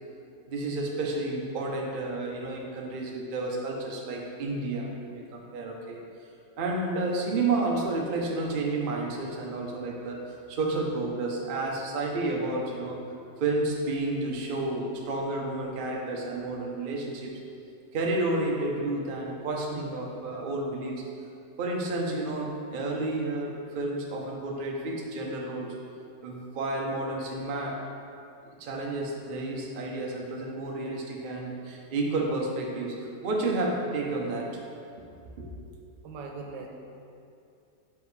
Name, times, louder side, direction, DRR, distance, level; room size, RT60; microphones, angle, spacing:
voice 1, 0.5-6.0 6.6-13.0 13.4-17.3 17.9-21.0 21.6-25.8 26.2-27.8 28.5-34.8 35.4-35.5, right 2 dB, 60° right, -1 dB, 0.5 m, -31 dB
voice 2, 36.0-36.7, right 4 dB, 90° right, 2 dB, 1.3 m, -39 dB
5.7 x 5.2 x 3.2 m, 2.6 s
omnidirectional pair, 1.9 m